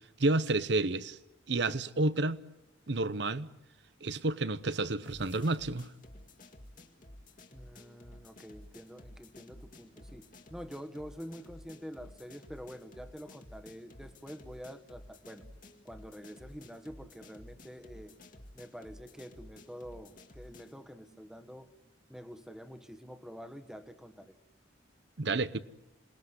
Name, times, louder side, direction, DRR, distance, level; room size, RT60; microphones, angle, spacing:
voice 1, 0.2-1.2 1.5-2.4 2.9-3.5 4.0-5.9 25.2-25.6, right 2 dB, 65° right, 0.9 m, -30 dB
sound 1, 5.0-20.8, left 1 dB, 45° left, 2.1 m, -53 dB
voice 2, 7.5-15.4 15.8-18.1 18.5-21.7 22.1-24.4, equal, 5° right, 1.5 m, -47 dB
27.5 x 20.0 x 9.8 m
head